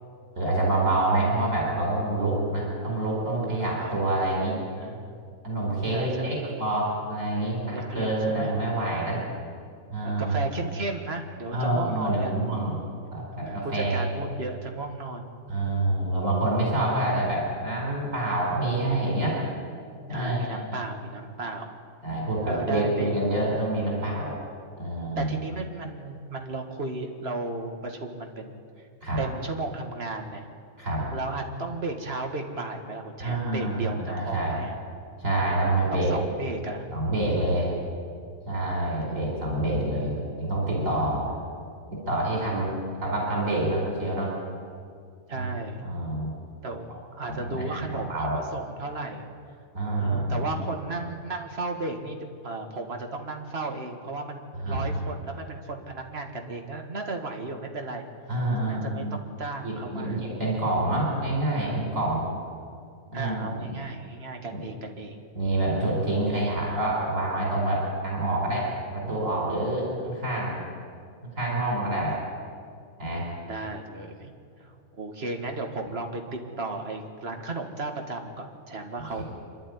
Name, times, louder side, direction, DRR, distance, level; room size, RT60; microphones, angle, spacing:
voice 1, 0.3-4.6 5.4-9.2 9.9-10.5 11.5-12.8 13.1-14.1 15.5-19.4 20.1-20.8 22.0-24.3 24.8-25.3 29.0-29.2 30.8-31.1 33.2-34.6 35.2-36.1 36.9-37.7 38.5-41.3 42.0-44.3 45.3-45.5 45.8-46.3 47.3-48.4 49.7-50.6 54.6-55.0 58.3-59.3 59.6-62.3 63.1-63.7 64.5-64.6 65.3-70.6 71.4-72.2 73.0-73.2 79.0-79.2, right 1 dB, 65° right, -3 dB, 4.9 m, -27 dB
voice 2, 3.6-4.1 4.8-5.1 5.9-6.6 7.7-8.5 10.2-12.4 13.4-15.3 20.1-21.8 22.4-23.2 25.2-28.9 29.2-30.4 31.1-34.8 35.9-36.9 39.0-39.5 45.3-45.8 46.6-49.3 50.0-58.0 58.7-60.2 63.1-65.2 71.1-71.2 73.4-74.3 74.6-79.2, right 3 dB, 45° right, 4 dB, 2.0 m, -34 dB
25.0 x 12.0 x 9.6 m, 2.3 s
omnidirectional pair, 1.5 m